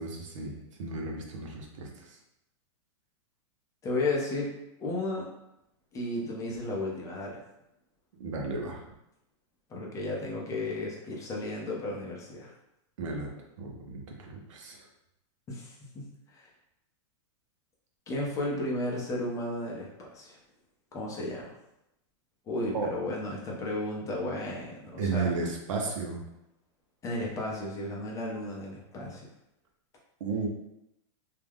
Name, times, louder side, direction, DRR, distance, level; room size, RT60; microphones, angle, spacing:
voice 1, 0.0-2.1 8.2-8.8 13.0-13.3 13.6-14.8 22.7-22.9 25.0-26.2 30.2-30.5, right 4 dB, 85° right, 0 dB, 0.7 m, -33 dB
voice 2, 3.8-4.5 4.8-5.3 5.9-7.4 9.7-12.6 15.5-16.5 18.1-20.4 20.9-21.6 22.5-25.3 27.0-29.3, left 2 dB, 20° left, -2 dB, 0.5 m, -34 dB
2.3 x 2.1 x 3.4 m, 0.85 s
supercardioid pair, 145°, 16 cm